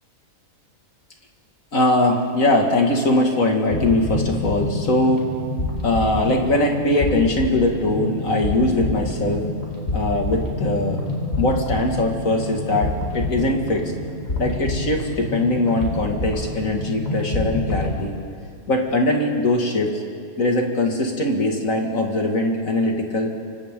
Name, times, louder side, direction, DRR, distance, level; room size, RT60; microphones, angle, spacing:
voice 1, 1.7-5.2 5.8-9.5 9.9-11.0 11.4-13.9 14.4-18.2 18.7-20.0 20.4-23.3, left 2 dB, 65° left, 1 dB, 2.6 m, -21 dB
sound 1, 3.7-17.9, left 2 dB, 45° left, 4.7 m, -27 dB
29.0 x 25.5 x 3.9 m, 2.3 s
omnidirectional pair, 1.5 m